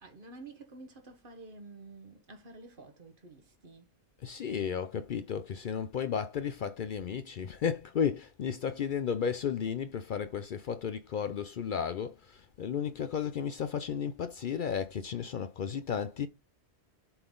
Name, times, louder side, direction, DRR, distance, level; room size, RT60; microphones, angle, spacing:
voice 1, 0.0-4.0, right 3 dB, 50° right, 1.3 m, -50 dB
voice 2, 4.2-16.3, left 7 dB, 60° left, 0.6 m, -33 dB
6.9 x 3.9 x 3.7 m
omnidirectional pair, 1.1 m